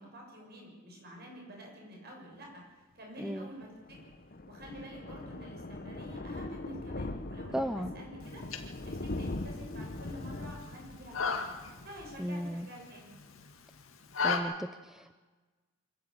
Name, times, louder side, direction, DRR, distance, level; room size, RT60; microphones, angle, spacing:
voice 1, 0.0-2.6 2.9-4.1 4.4-8.4 8.8-11.6 11.8-13.1, equal, 50° right, -1 dB, 7.0 m, -48 dB
voice 2, 3.2-3.5 7.5-7.9 12.2-12.7 14.2-15.2, equal, ahead, 9 dB, 0.6 m, -35 dB
Thunder, 3.6-13.0 13.3-13.5 13.8-13.9 14.1-14.2, left 2 dB, 45° left, 1.0 m, -41 dB
sound 1, 8.2-14.4, left 5 dB, 75° left, 2.0 m, -37 dB
25.0 x 12.5 x 8.7 m, 1.3 s
head